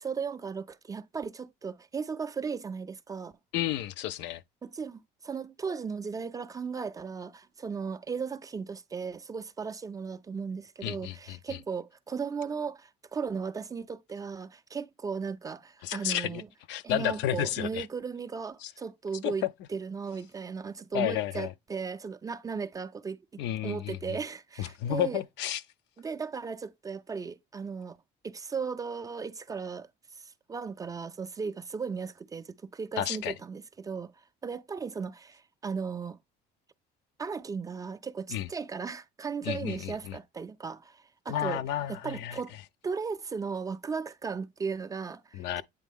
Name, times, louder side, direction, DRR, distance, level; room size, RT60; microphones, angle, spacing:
voice 1, 0.0-3.3 4.6-16.5 16.8-19.4 19.7-23.2 23.6-25.2 26.0-28.0 28.2-36.2 37.2-41.6 41.9-42.5 42.8-45.6, right 5 dB, 20° right, 0.3 m, -36 dB
voice 2, 3.5-4.4 10.8-11.6 15.8-16.4 16.7-17.9 18.6-18.7 19.2-19.3 20.9-21.5 23.4-24.2 24.6-25.6 33.0-33.3 38.3-38.5 39.4-40.2 41.3-42.4 45.3-45.6, left 12 dB, 75° left, 0.5 m, -32 dB
8.3 x 3.4 x 3.5 m
cardioid pair, 130°, 18 cm